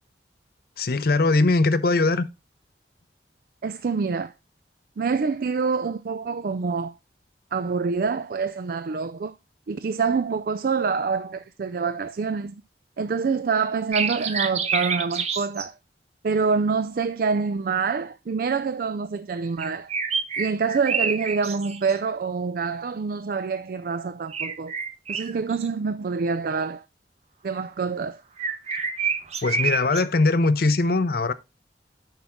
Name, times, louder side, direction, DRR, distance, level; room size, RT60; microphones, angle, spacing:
voice 1, 0.8-2.3 29.4-31.3, left 3 dB, 55° left, 0.6 m, -21 dB
voice 2, 3.6-4.3 5.0-6.9 7.5-9.3 9.7-12.6 13.0-15.7 16.2-19.9 20.4-24.7 25.1-26.8 27.4-28.2, right 5 dB, 55° right, 0.4 m, -26 dB
sound 1, 13.9-15.7 19.6-22.0 24.3-25.7 28.4-30.0, right 5 dB, 40° right, 0.8 m, -27 dB
9.3 x 5.9 x 3.6 m
head